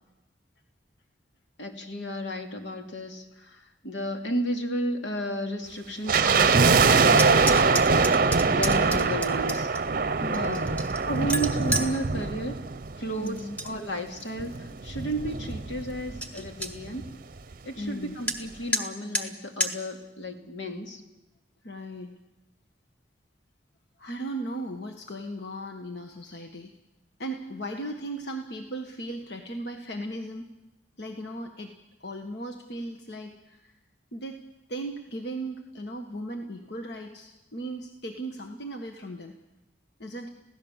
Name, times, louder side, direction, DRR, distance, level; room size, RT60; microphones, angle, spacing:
voice 1, 1.6-9.7 10.3-10.8 11.0-12.6 13.0-13.4 13.6-14.5 14.8-17.0 17.6-21.0, equal, 85° left, 4 dB, 2.7 m, -33 dB
sound 1, 6.1-13.4 13.6-13.7 14.4-16.2 16.5-16.6 16.8-17.1 17.5-17.6, right 4 dB, 50° right, 0.7 m, -23 dB
sound 2, 7.1-9.8 10.3-11.9 13.2-13.7 14.1-14.6 15.1-15.2 15.5-15.6 15.9-16.0 16.2-16.7 18.3-18.4 18.7-18.8 19.1-19.3 19.6-19.7, equal, 10° left, 1.5 m, -30 dB
voice 2, 10.2-10.7 13.2-13.6 16.4-16.5 17.8-18.2 21.6-22.1 24.0-26.7 27.2-30.5 31.0-31.7 32.0-33.7 34.1-34.4 34.7-39.3 40.0-40.3, right 1 dB, 65° left, 4 dB, 1.5 m, -37 dB
27.0 x 16.5 x 7.4 m, 0.99 s
head